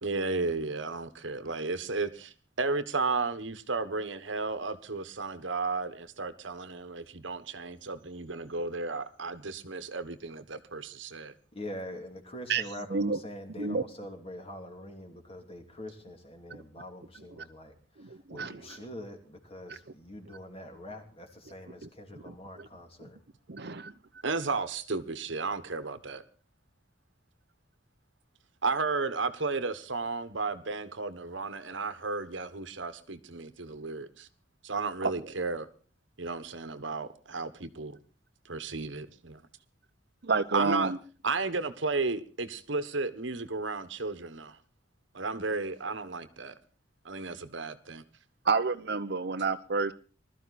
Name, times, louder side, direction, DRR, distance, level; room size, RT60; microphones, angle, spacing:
voice 1, 0.0-11.3 24.2-26.2 28.6-34.3 34.6-35.7 36.2-38.0 38.5-39.4 40.5-40.9 41.2-44.6 45.1-46.5 47.0-48.0, right 3 dB, 75° right, 1.4 m, -33 dB
voice 2, 11.5-17.7 18.3-23.2, left 1 dB, 30° left, 2.9 m, -44 dB
voice 3, 18.0-18.8 19.7-19.8 22.3-22.7 23.5-23.9 35.0-35.1 40.2-41.0 48.5-49.9, right 4 dB, 55° right, 0.9 m, -29 dB
20.5 x 13.5 x 4.2 m
head